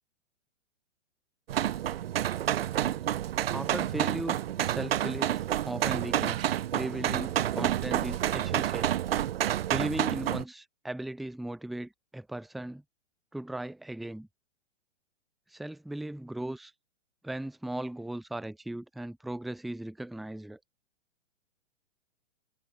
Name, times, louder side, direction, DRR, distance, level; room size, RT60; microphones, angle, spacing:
sound 1, 1.5-10.4, right 11 dB, 50° right, 0.8 m, -29 dB
voice 1, 3.5-8.9 9.7-12.8 13.3-14.3 15.5-16.7 17.2-20.6, right 1 dB, ahead, 0.4 m, -37 dB
figure-of-eight pair, 110°, 37 cm